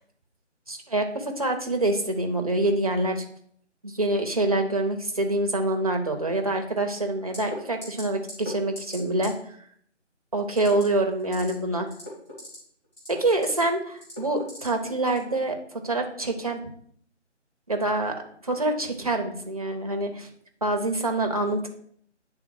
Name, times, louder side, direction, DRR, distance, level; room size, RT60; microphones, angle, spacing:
voice 1, 0.7-3.2 3.8-9.3 10.3-11.9 13.1-15.6 15.8-16.6 17.7-18.2 18.4-20.3 20.6-21.7, right 2 dB, 30° right, 4 dB, 0.7 m, -26 dB
sound 1, 7.3-7.6 7.8-8.0 8.3-8.5 8.8-9.0 9.2-9.3 10.5-10.8 11.2-11.5 11.9-12.6 12.9-13.6 14.0-14.7 15.1-15.2, left 1 dB, 10° left, 1.3 m, -38 dB
9.0 x 3.6 x 4.6 m, 0.63 s
figure-of-eight pair, 155°, 37 cm